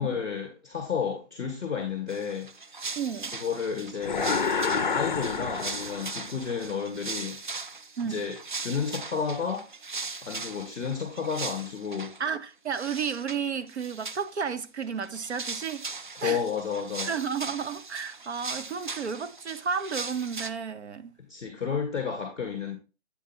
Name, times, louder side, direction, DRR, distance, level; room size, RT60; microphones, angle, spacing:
voice 1, 0.0-2.5 3.4-4.4 4.9-7.4 8.0-9.6 10.2-12.1 16.2-17.1 21.3-22.8, left 6 dB, 5° right, 0.6 m, -31 dB
sound 1, 2.1-12.2 12.7-13.4 13.7-14.5 14.8-20.5, right 4 dB, 45° right, 0.4 m, -39 dB
voice 2, 3.0-3.3 8.0-8.2 12.2-15.8 16.2-16.4 17.0-21.1, right 6 dB, 65° right, 0.8 m, -32 dB
sound 2, 4.0-6.3, left 5 dB, 45° left, 0.5 m, -28 dB
8.3 x 4.2 x 4.4 m
hypercardioid pair, 175°, 36 cm